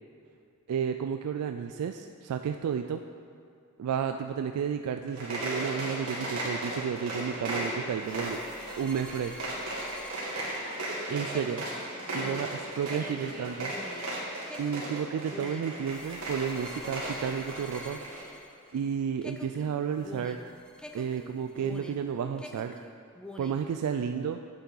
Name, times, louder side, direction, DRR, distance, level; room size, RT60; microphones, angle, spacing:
voice 1, 0.7-3.0 3.8-8.4 8.8-9.3 11.1-11.6 12.1-12.5 12.7-13.7 14.6-18.0 18.7-20.4 20.9-22.7 23.4-24.4, right 7 dB, 90° right, 7 dB, 0.3 m, -32 dB
sound 1, 5.0-18.3, right 1 dB, 70° right, 2.1 m, -36 dB
sound 2, 8.0-18.9 19.2-22.1 22.4-23.7, left 1 dB, 5° left, 0.4 m, -47 dB
voice 2, 10.2-11.2 12.1-12.2 12.8-14.1, right 2 dB, 40° right, -3 dB, 1.5 m, -46 dB
8.3 x 8.0 x 3.9 m, 2.4 s
head